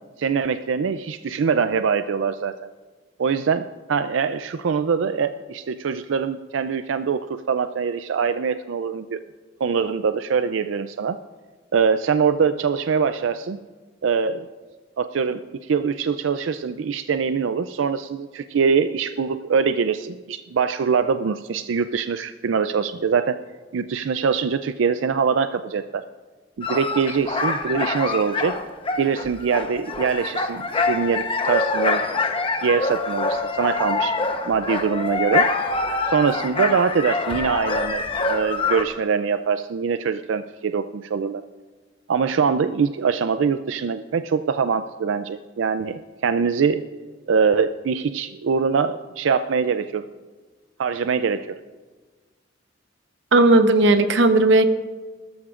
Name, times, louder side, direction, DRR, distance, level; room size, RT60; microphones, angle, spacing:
voice 1, 0.2-2.5 3.2-9.2 9.6-11.2 11.7-13.6 14.0-14.5 15.0-23.4 23.7-26.0 26.6-28.6 29.0-32.1 32.6-34.2 34.5-35.5 36.1-38.0 38.3-41.4 42.1-46.8 47.3-50.1 50.8-51.5, right 6 dB, 85° right, 11 dB, 0.4 m, -23 dB
sound 1, 26.6-38.8, left 3 dB, 30° left, 0.9 m, -25 dB
voice 2, 53.3-54.6, right 2 dB, 70° right, 8 dB, 0.9 m, -15 dB
20.0 x 13.5 x 2.5 m, 1.3 s
head